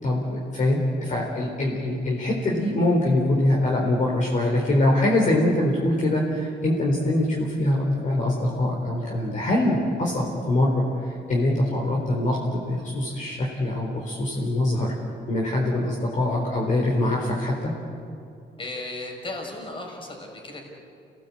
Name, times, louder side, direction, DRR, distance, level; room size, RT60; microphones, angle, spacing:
voice 1, 0.0-10.8 11.3-14.9 15.3-17.7, left 1 dB, 45° left, -2 dB, 4.1 m, -23 dB
voice 2, 18.6-20.6, left 2 dB, 30° left, 1 dB, 5.7 m, -35 dB
29.5 x 18.0 x 8.6 m, 2.5 s
cardioid pair, 135°, 18 cm